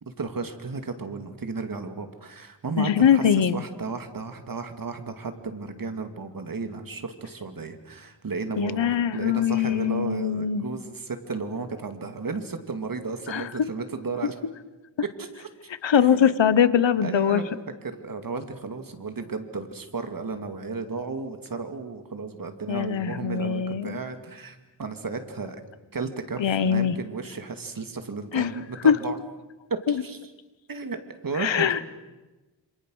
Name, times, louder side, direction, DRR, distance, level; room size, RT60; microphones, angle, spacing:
voice 1, 0.0-14.3 15.0-15.5 15.9-16.3 17.0-17.5 17.8-25.6 25.9-29.2 29.7-30.2 30.7-31.7, right 4 dB, 50° right, 7 dB, 2.3 m, -34 dB
voice 2, 2.8-3.6 8.6-10.7 13.3-13.5 15.8-17.4 22.7-24.0 26.4-26.9 28.3-28.5 28.8-28.9 31.4-31.8, left 8 dB, 85° left, 15 dB, 1.2 m, -22 dB
27.0 x 26.0 x 6.4 m, 1.1 s
wide cardioid pair, 120°, 44 cm